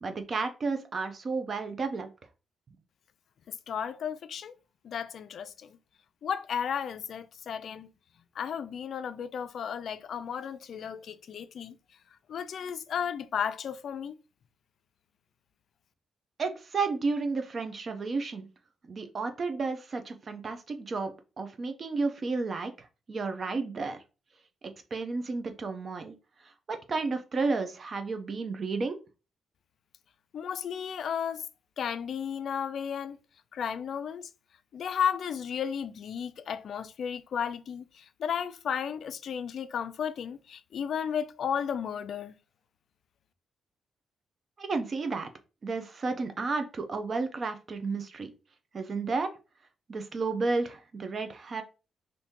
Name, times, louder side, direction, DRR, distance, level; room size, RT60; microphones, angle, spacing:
voice 1, 0.0-2.1 16.4-18.5 18.9-22.7 23.1-24.0 24.9-26.2 26.7-29.0 44.6-45.3 45.6-48.3 48.7-49.3 49.9-51.6, right 4 dB, 40° right, 0.5 m, -32 dB
voice 2, 3.5-4.6 4.8-5.8 6.2-7.9 8.4-11.8 12.3-14.1 30.3-31.4 31.8-33.2 33.5-34.3 34.7-42.3, left 8 dB, 65° left, 0.3 m, -34 dB
2.8 x 2.6 x 3.5 m
cardioid pair, 110°, 0 cm